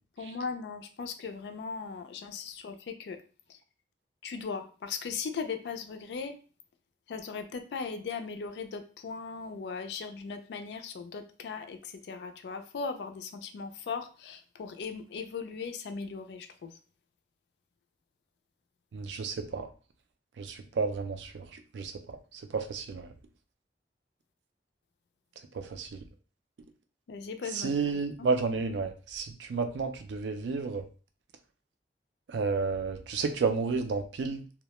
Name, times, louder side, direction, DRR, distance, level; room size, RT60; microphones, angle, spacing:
voice 1, 0.2-3.2 4.2-6.4 7.1-11.8 12.1-16.7 27.1-27.7 28.2-28.3, left 5 dB, 70° left, 8 dB, 0.3 m, -38 dB
voice 2, 18.9-19.7 20.4-21.4 21.7-21.9 22.5-23.1 25.6-26.0 27.5-30.8 32.3-34.4, right 4 dB, 80° right, 7 dB, 0.4 m, -31 dB
2.2 x 2.1 x 2.9 m, 0.37 s
head